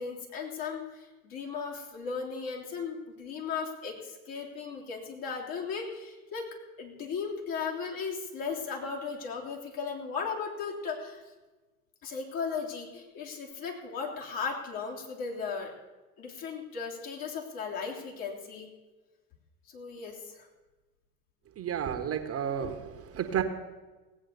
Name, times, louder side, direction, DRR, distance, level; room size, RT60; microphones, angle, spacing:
voice 1, 0.0-11.2 12.0-15.7 16.2-18.7 19.7-20.5, left 5 dB, 50° left, -1 dB, 3.4 m, -36 dB
voice 2, 21.6-23.4, right 9 dB, 30° right, 7 dB, 1.3 m, -32 dB
17.5 x 8.4 x 6.8 m, 1.2 s
hypercardioid pair, 75°, 44 cm